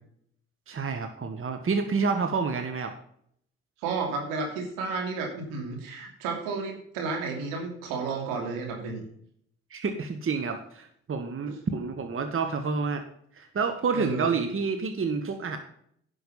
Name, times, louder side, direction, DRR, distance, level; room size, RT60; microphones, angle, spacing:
voice 1, 0.7-2.9 9.7-13.0 13.4-15.6, right 5 dB, 40° right, 6 dB, 1.6 m, -29 dB
voice 2, 3.8-9.0 13.9-14.3, right 4 dB, 80° right, 1 dB, 2.9 m, -32 dB
10.5 x 6.2 x 5.5 m, 0.66 s
hypercardioid pair, 45°, 33 cm